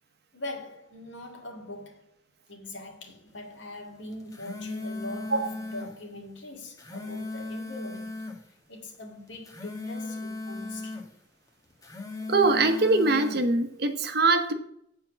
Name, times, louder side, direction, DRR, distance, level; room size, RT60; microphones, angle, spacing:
voice 1, 0.3-2.1 2.5-8.2 8.7-11.1, left 1 dB, 80° left, 2.2 m, -42 dB
sound 1, 4.1-5.9 6.6-8.4 9.3-11.1 11.7-13.4, left 2 dB, 20° left, 1.3 m, -37 dB
voice 2, 12.3-14.5, right 3 dB, 55° right, 1.0 m, -23 dB
8.6 x 4.6 x 6.9 m
head